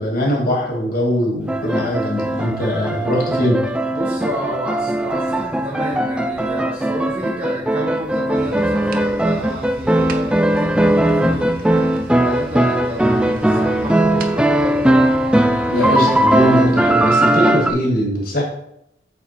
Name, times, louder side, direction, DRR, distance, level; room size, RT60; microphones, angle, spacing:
voice 1, 0.0-3.6 15.7-18.4, equal, 55° left, -1 dB, 2.3 m, -21 dB
sound 1, 1.5-17.7, right 1 dB, 5° right, 0.4 m, -18 dB
voice 2, 3.9-15.1, equal, 35° right, -4 dB, 1.3 m, -30 dB
sound 2, 8.3-17.1, right 2 dB, 55° right, 0.7 m, -37 dB
8.0 x 4.3 x 4.4 m, 0.79 s
head